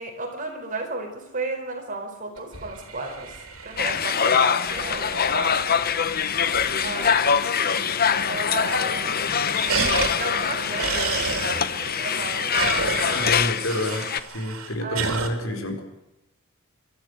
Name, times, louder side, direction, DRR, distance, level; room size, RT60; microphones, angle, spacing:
voice 1, 0.0-5.9 6.8-7.4 8.0-9.2 10.2-13.5 14.8-15.1, right 3 dB, 40° right, 4 dB, 4.5 m, -34 dB
sound 1, 2.4-7.7 8.0-8.1 8.3-8.8 9.1-15.3, right 5 dB, 90° right, 3.3 m, -32 dB
sound 2, 3.8-14.2, left 7 dB, 45° left, 0.9 m, -24 dB
sound 3, 7.7-13.1, right 2 dB, 55° right, 3.5 m, -40 dB
voice 2, 13.1-15.8, left 1 dB, 70° left, 4 dB, 4.6 m, -29 dB
23.5 x 13.5 x 8.1 m, 0.94 s
head